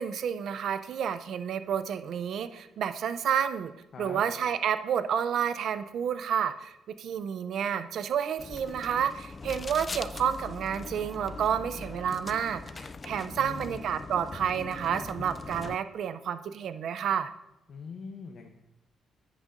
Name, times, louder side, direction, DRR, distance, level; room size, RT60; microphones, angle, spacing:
voice 1, 0.0-3.7 4.0-17.3, right 8 dB, 70° right, 11 dB, 0.4 m, -30 dB
sound 1, 8.4-15.8, left 3 dB, 30° left, 0.3 m, -41 dB
voice 2, 13.4-14.0 17.7-18.5, left 5 dB, 60° left, 3 dB, 0.7 m, -42 dB
10.5 x 6.3 x 2.5 m, 0.92 s
cardioid pair, 90°, 0 cm